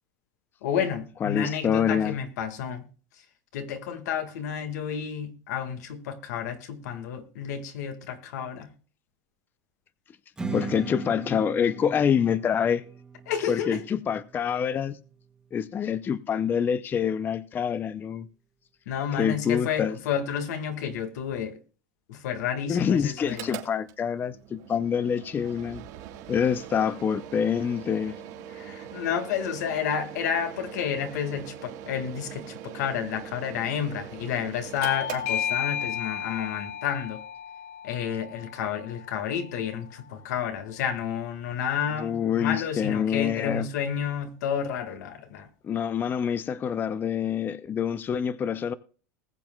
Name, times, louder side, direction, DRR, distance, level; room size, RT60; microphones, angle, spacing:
voice 1, 0.6-2.9 3.5-8.7 13.3-13.7 18.9-21.6 22.1-23.6 28.6-37.2 37.8-45.5, left 8 dB, 80° left, 1.6 m, -30 dB
voice 2, 1.2-2.2 10.5-12.8 13.4-15.0 15.5-18.3 19.1-20.0 22.7-25.9 26.3-28.2 41.9-43.7 45.6-48.7, left 7 dB, 20° left, 0.4 m, -26 dB
Strum, 10.4-15.6, right 4 dB, 10° right, 1.3 m, -39 dB
Mechanical fan, 23.2-36.0, right 10 dB, 65° right, 2.5 m, -42 dB
Bell / Doorbell, 34.8-40.0, left 9 dB, 65° left, 0.9 m, -34 dB
20.0 x 7.5 x 2.2 m
supercardioid pair, 135°, 9 cm